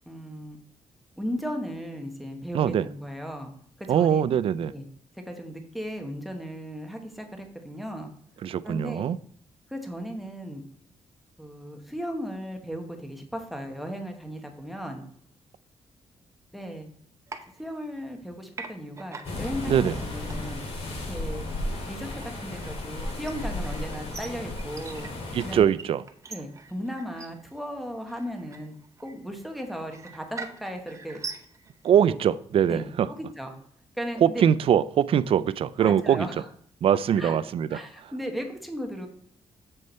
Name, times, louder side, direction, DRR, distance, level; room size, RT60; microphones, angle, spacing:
voice 1, 0.1-0.6 1.2-3.5 3.8-4.3 4.7-4.9 5.2-8.1 8.6-9.1 9.7-10.6 11.4-15.0 16.5-16.9 17.6-20.6 21.1-21.4 21.8-25.1 25.4-25.7 26.3-28.7 29.0-31.2 31.9-32.2 32.7-33.5 34.0-34.4 35.8-36.4 37.2-37.4 37.7-39.1, equal, ahead, 1.1 m, -36 dB
voice 2, 2.5-2.9 3.9-4.7 8.4-9.2 19.7-19.9 25.3-26.0 31.8-33.1 34.2-36.3 36.8-37.8, right 9 dB, 55° right, 0.3 m, -22 dB
sound 1, 17.3-18.2 18.5-31.9, right 4 dB, 25° right, 0.7 m, -44 dB
sound 2, 19.2-25.6, left 2 dB, 60° left, 2.2 m, -34 dB
7.1 x 6.5 x 4.3 m
wide cardioid pair, 165°, 12 cm